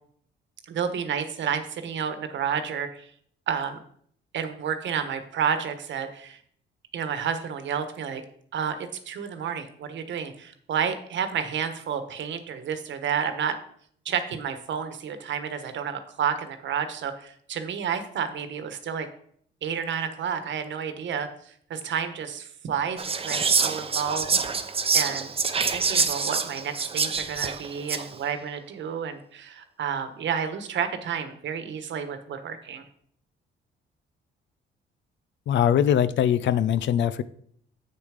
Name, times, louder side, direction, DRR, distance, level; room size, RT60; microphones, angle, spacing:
voice 1, 0.7-3.1 3.5-3.8 4.3-6.4 6.9-8.2 8.5-8.8 9.1-13.5 14.0-19.1 19.6-24.3 24.9-25.3 25.7-32.8, right 7 dB, 65° right, 9 dB, 1.2 m, -30 dB
Whispering, 23.0-28.1, right 5 dB, 30° right, 0.7 m, -26 dB
voice 2, 35.5-37.2, left 9 dB, 65° left, 15 dB, 0.6 m, -22 dB
7.6 x 6.8 x 5.0 m, 0.64 s
cardioid pair, 90°, 20 cm